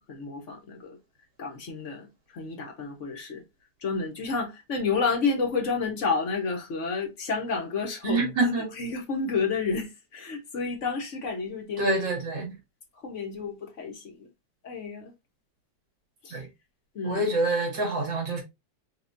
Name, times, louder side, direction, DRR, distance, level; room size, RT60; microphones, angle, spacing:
voice 1, 0.1-1.0 1.4-2.1 2.3-3.4 3.8-8.2 8.7-11.8 13.0-14.3 14.6-15.1 16.2-16.5 16.9-17.2, left 4 dB, 50° left, 1.1 m, -30 dB
voice 2, 8.0-8.7 11.8-12.5 16.3-16.4 17.0-18.4, right 2 dB, 70° right, 2.9 m, -26 dB
5.7 x 2.6 x 2.6 m
omnidirectional pair, 2.0 m